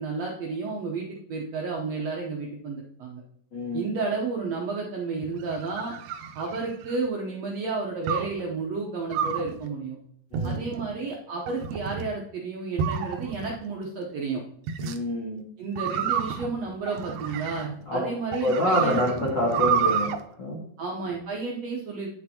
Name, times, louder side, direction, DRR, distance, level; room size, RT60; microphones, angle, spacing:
voice 1, 0.0-3.2 3.7-5.9 6.3-10.0 10.4-14.4 15.6-19.3 20.8-22.1, right 4 dB, 70° right, -1 dB, 1.6 m, -32 dB
voice 2, 3.5-3.9 10.3-10.6 14.8-15.5 17.9-18.0 18.4-20.1 20.4-20.6, left 1 dB, 45° left, -4 dB, 1.6 m, -26 dB
sound 1, 5.2-7.1 8.1-8.4 9.1-9.6 10.3-10.9 11.5-12.1 12.8-13.6 14.7-15.0 15.8-17.8 18.3-20.2, right 7 dB, 90° right, 2.4 m, -29 dB
9.4 x 6.5 x 2.8 m, 0.68 s
omnidirectional pair, 4.0 m